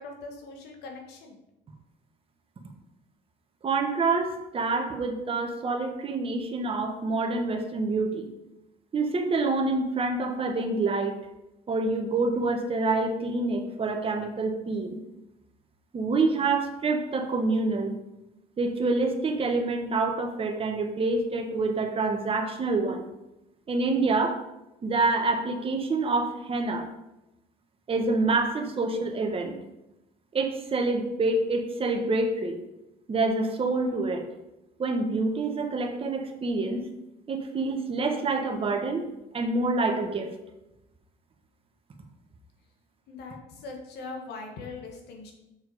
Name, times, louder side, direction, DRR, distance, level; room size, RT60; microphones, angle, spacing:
voice 1, 0.0-1.4 43.1-45.3, left 3 dB, 80° left, 2 dB, 1.8 m, -41 dB
voice 2, 3.6-8.3 8.9-11.2 11.7-15.0 15.9-17.9 18.6-23.1 23.7-24.4 24.8-26.9 27.9-29.6 30.3-32.6 33.1-34.3 34.8-36.8 37.3-39.1 39.3-40.3, right 3 dB, 35° right, 4 dB, 1.4 m, -27 dB
6.9 x 6.2 x 4.9 m, 0.92 s
cardioid pair, 110°, 17 cm